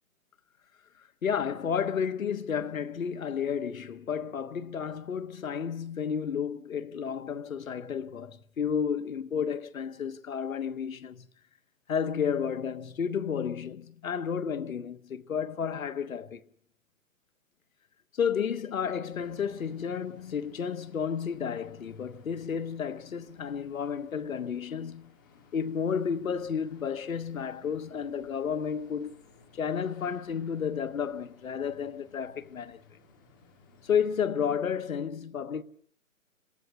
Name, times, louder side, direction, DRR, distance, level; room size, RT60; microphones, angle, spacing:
voice 1, 1.2-11.3 11.9-16.4 18.1-25.1 25.5-29.2 29.5-33.0 33.8-35.6, left 7 dB, 85° left, 1.3 m, -32 dB
sound 1, 19.1-34.3, left 3 dB, 15° left, 1.9 m, -59 dB
26.5 x 13.0 x 9.5 m
hypercardioid pair, 180°, 40 cm